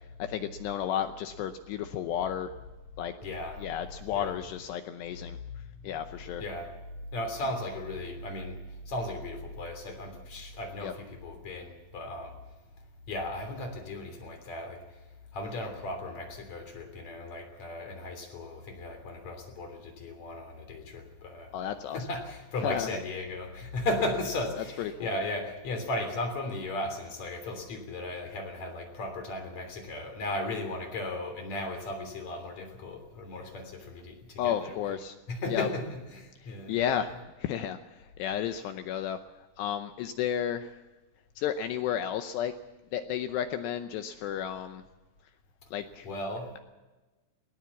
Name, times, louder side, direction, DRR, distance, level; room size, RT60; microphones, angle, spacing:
voice 1, 0.2-2.5 3.0-3.1 3.6-5.4 5.8-6.4 10.8-10.9 21.5-22.0 22.6-22.9 24.8-25.1 34.4-35.2 35.5-35.7 36.4-37.1 37.4-39.2 39.6-40.8 41.4-42.5 42.9-44.8 45.7-46.1, left 9 dB, 80° left, 8 dB, 2.6 m, -32 dB
voice 2, 3.2-3.6 4.1-4.3 5.8-5.9 6.4-6.7 7.1-12.4 13.1-15.0 15.3-21.6 21.9-34.8 35.3-36.8 46.0-46.5, left 2 dB, 40° left, 5 dB, 3.9 m, -36 dB
20.0 x 18.0 x 7.2 m, 1.1 s
omnidirectional pair, 5.7 m